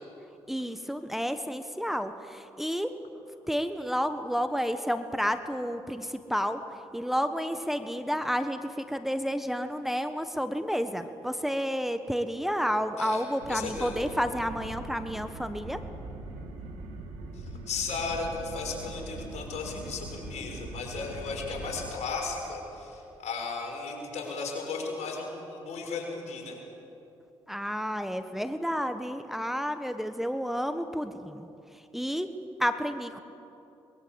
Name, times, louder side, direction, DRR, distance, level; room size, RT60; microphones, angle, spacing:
voice 1, 0.5-3.0 3.5-15.8 27.5-33.2, equal, ahead, 9 dB, 1.4 m, -31 dB
sound 1, 13.4-21.9, right 2 dB, 85° right, 2.8 m, -41 dB
voice 2, 13.5-14.0 17.3-26.6, left 4 dB, 70° left, 0 dB, 6.4 m, -35 dB
23.0 x 21.5 x 8.2 m, 2.9 s
hypercardioid pair, 50°, 12 cm